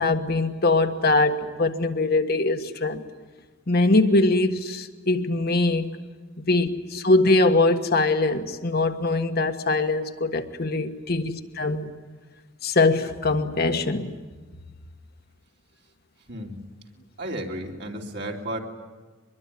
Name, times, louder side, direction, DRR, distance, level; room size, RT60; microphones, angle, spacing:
voice 1, 0.0-3.0 3.7-5.9 6.4-11.9 12.6-14.1, left 2 dB, 50° left, 6 dB, 1.5 m, -22 dB
voice 2, 16.3-16.6 17.2-18.6, right 1 dB, 60° right, 0 dB, 3.1 m, -33 dB
23.5 x 22.5 x 9.9 m, 1.3 s
head